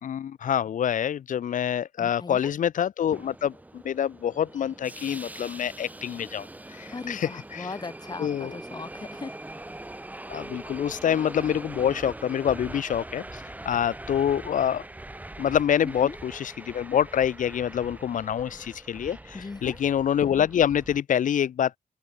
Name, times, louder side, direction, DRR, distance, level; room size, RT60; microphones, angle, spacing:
voice 1, 0.0-7.7 8.2-8.5 10.3-14.8 15.4-21.8, left 9 dB, 80° left, 1.3 m, -26 dB
voice 2, 2.0-2.5 6.9-9.3 15.8-16.2 19.3-19.8, left 4 dB, 30° left, 4.6 m, -38 dB
Subway metro underground, 3.1-21.0, right 1 dB, 10° right, 1.9 m, -42 dB
wide cardioid pair, 110°, 13 cm